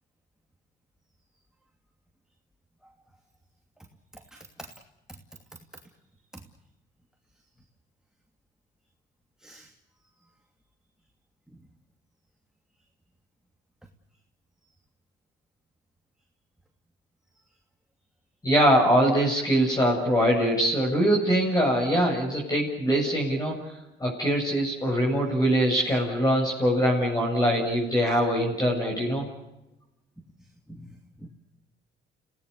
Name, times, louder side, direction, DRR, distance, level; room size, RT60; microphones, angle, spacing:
voice 1, 4.3-4.7 9.4-9.7 30.7-31.3, right 1 dB, 5° right, 2 dB, 2.8 m, -46 dB
voice 2, 18.4-29.3, equal, 20° left, -3 dB, 7.9 m, -23 dB
29.5 x 18.5 x 6.9 m, 0.93 s
cardioid pair, 90°, 20 cm